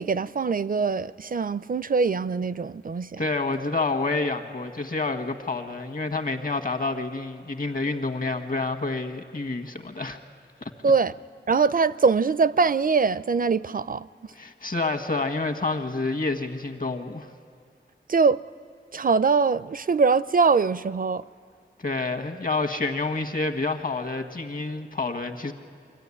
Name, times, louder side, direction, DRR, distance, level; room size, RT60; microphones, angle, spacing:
voice 1, 0.0-3.2 10.8-11.1 11.5-14.1 18.1-18.4 18.9-21.2, right 5 dB, 45° right, 17 dB, 0.4 m, -22 dB
voice 2, 3.2-10.2 10.6-10.9 14.4-17.3 21.8-25.5, left 3 dB, 45° left, 7 dB, 1.6 m, -28 dB
24.0 x 14.0 x 9.9 m, 2.3 s
wide cardioid pair, 65°, 20 cm